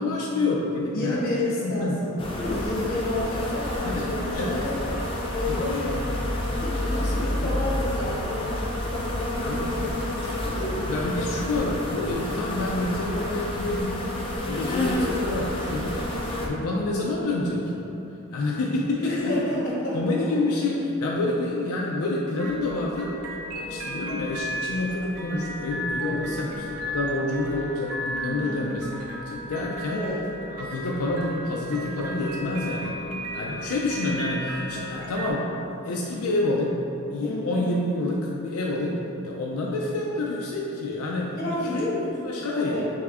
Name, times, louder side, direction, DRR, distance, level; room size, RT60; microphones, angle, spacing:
voice 1, 0.0-2.0 3.8-4.0 4.3-4.6 5.4-5.8 6.9-7.5 9.4-9.7 10.7-14.1 14.4-16.0 16.4-17.7 18.3-19.3 19.9-23.1 23.5-30.0 30.6-32.9 33.3-35.4 35.9-36.8 37.1-38.9 39.2-41.3 41.6-41.8 42.2-42.8, left 2 dB, 85° left, -3 dB, 0.4 m, -28 dB
voice 2, 0.9-4.8 5.3-5.7 6.6-10.9 13.9-14.3 19.0-20.2 23.6-24.0 26.2-26.5 28.4-28.8 29.9-30.2 37.2-37.6 41.4-42.9, left 1 dB, 45° left, -7 dB, 1.0 m, -31 dB
sound 1, 2.2-16.5, left 1 dB, 25° left, 0.4 m, -29 dB
sound 2, 22.4-35.3, right 1 dB, 85° right, 0.5 m, -35 dB
3.5 x 3.5 x 3.4 m, 2.9 s
head